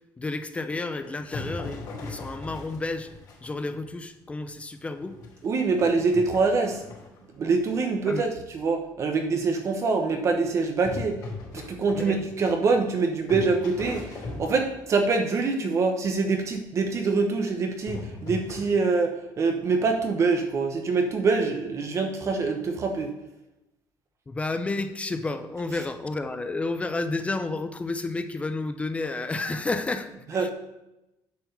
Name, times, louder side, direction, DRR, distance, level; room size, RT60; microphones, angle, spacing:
voice 1, 0.2-3.1 3.4-5.2 8.1-8.3 11.9-12.2 24.3-30.5, left 3 dB, 15° left, 9 dB, 0.5 m, -31 dB
sound 1, 0.9-3.8 4.3-4.4 4.9-7.2 10.8-13.0 13.3-15.1 17.9-18.6, left 3 dB, 50° left, 3.3 m, -38 dB
voice 2, 5.4-6.8 7.3-11.3 11.5-23.1 30.3-30.5, right 4 dB, 35° right, 4 dB, 0.9 m, -25 dB
9.5 x 4.6 x 6.7 m, 0.92 s
cardioid pair, 155°, 8 cm